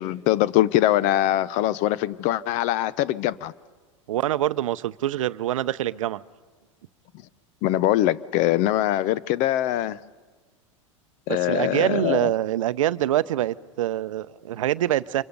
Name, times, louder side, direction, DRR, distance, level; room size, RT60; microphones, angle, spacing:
voice 1, 0.0-3.5 7.6-10.0 11.3-12.3, left 14 dB, 50° left, 0.6 m, -22 dB
voice 2, 4.1-6.2 11.3-15.2, right 13 dB, 80° right, 0.6 m, -25 dB
26.0 x 23.0 x 5.3 m
hypercardioid pair, 105°, 17 cm